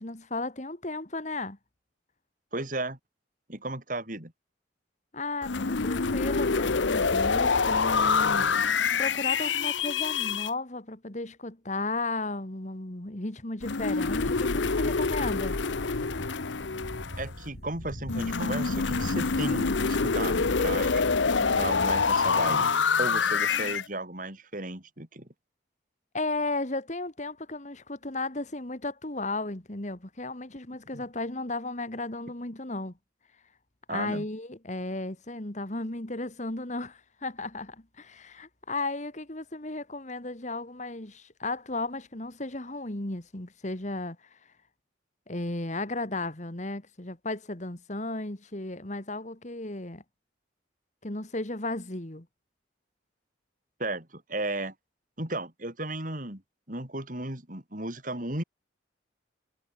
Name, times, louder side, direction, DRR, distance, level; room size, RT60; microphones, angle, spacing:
voice 1, 0.0-1.6 5.1-8.5 9.0-15.6 26.1-32.9 33.9-44.4 45.3-50.0 51.0-52.3, left 2 dB, 40° left, 2.0 m, -34 dB
voice 2, 2.5-3.0 3.5-4.3 17.2-21.0 21.3-22.7 23.0-25.3 30.9-31.0 33.9-34.3 53.8-54.7 55.2-56.4 56.7-58.4, right 2 dB, 45° right, 4.4 m, -34 dB
sound 1, 5.4-10.5 13.6-17.4 18.1-23.9, left 5 dB, 75° left, 0.9 m, -26 dB
sound 2, 14.0-19.6, equal, 55° left, 4.2 m, -42 dB
head